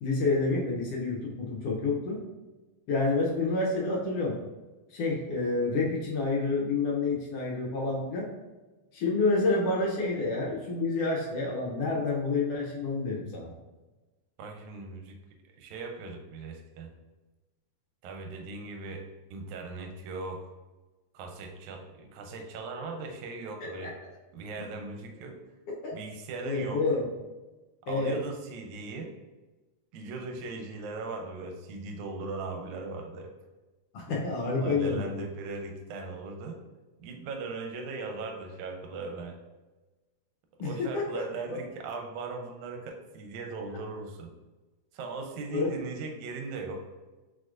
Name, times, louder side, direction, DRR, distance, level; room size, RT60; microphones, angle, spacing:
voice 1, 0.0-2.2 2.9-4.4 4.9-8.3 8.9-13.5 23.8-23.9 25.8-25.9 26.4-27.0 27.9-28.2 33.9-35.2 40.6-41.2 41.5-41.6 45.5-45.7, left 3 dB, 80° left, -3 dB, 1.4 m, -28 dB
voice 2, 14.4-15.2 15.5-16.9 18.0-20.5 21.1-24.0 24.3-25.4 25.9-26.8 27.9-29.1 29.9-33.3 34.6-36.6 37.0-39.4 40.6-44.3 44.9-46.8, right 3 dB, 80° right, 4 dB, 1.9 m, -39 dB
4.8 x 4.2 x 2.4 m, 1.2 s
omnidirectional pair, 3.6 m